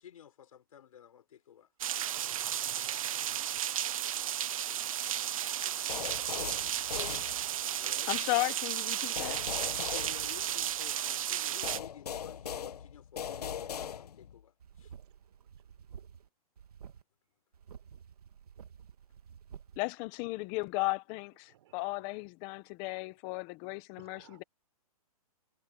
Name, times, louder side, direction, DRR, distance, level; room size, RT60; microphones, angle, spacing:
voice 1, 0.0-1.7 7.8-8.1 9.8-14.5 14.8-14.9, left 9 dB, 65° left, 4.8 m, -53 dB
sound 1, 1.8-11.8, right 10 dB, 60° right, 0.7 m, -34 dB
voice 2, 2.1-3.9 15.2-16.1 21.4-22.2 24.0-24.5, right 13 dB, 45° right, 6.0 m, -61 dB
sound 2, 5.9-7.8 9.2-10.9 11.6-14.4, left 8 dB, 85° left, 1.4 m, -40 dB
voice 3, 8.1-9.4 19.8-24.4, left 23 dB, 25° left, 1.0 m, -35 dB
sound 3, 14.6-16.3 16.6-17.0 17.5-19.8, right 8 dB, 80° right, 2.5 m, -51 dB
hypercardioid pair, 165°, 19 cm